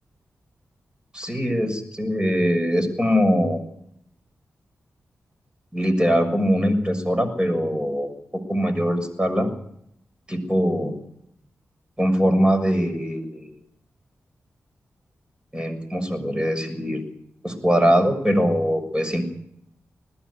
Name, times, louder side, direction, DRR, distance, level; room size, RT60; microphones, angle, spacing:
voice 1, 1.1-3.6 5.7-8.1 8.5-9.5 10.3-10.9 12.0-13.5 15.5-17.0 17.4-19.3, equal, 15° right, 7 dB, 6.5 m, -22 dB
20.5 x 15.0 x 8.5 m, 0.73 s
cardioid pair, 40°, 5 cm